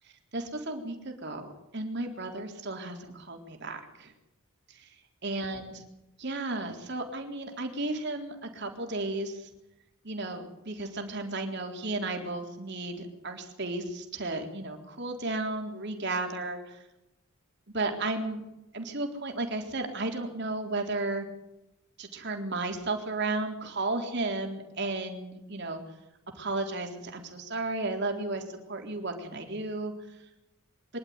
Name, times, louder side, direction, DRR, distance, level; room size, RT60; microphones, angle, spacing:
voice 1, 0.0-4.1 4.7-4.9 5.2-5.8 6.2-9.5 10.0-16.8 17.7-18.4 18.7-21.3 22.0-25.8 26.4-29.9, right 2 dB, 55° right, 3 dB, 3.8 m, -34 dB
24.5 x 12.0 x 9.7 m, 0.93 s
head